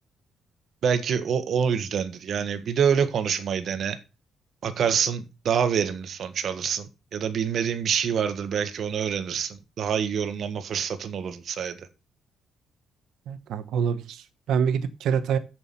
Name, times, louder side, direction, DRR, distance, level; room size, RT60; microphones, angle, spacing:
voice 1, 0.8-4.0 4.6-11.8, right 7 dB, 60° right, 1.4 m, -26 dB
voice 2, 13.3-15.4, right 7 dB, 80° right, 1.0 m, -26 dB
7.2 x 6.1 x 7.0 m
cardioid pair, 90°, 0 cm